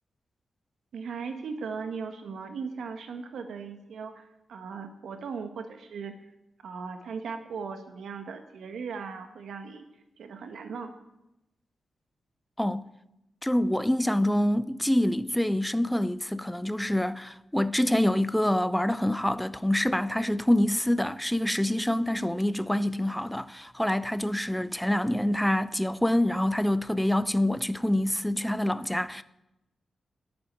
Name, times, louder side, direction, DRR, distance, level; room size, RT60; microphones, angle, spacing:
voice 1, 0.9-6.2 6.6-9.8 10.2-10.9, right 5 dB, 90° right, 1.4 m, -38 dB
voice 2, 12.6-12.9 13.4-29.2, left 1 dB, 5° left, 0.5 m, -26 dB
11.0 x 9.6 x 9.3 m
wide cardioid pair, 120°, 0 cm